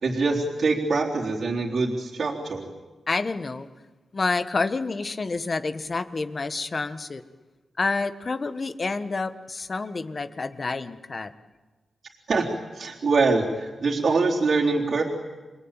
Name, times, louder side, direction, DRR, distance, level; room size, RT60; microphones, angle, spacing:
voice 1, 0.0-2.7 12.3-12.5 12.7-15.0, right 3 dB, 70° right, -2 dB, 3.8 m, -24 dB
voice 2, 3.1-3.7 4.1-7.2 7.8-11.3, left 3 dB, 45° left, 11 dB, 1.6 m, -28 dB
28.5 x 20.5 x 9.1 m, 1.2 s
cardioid pair, 60°, 0 cm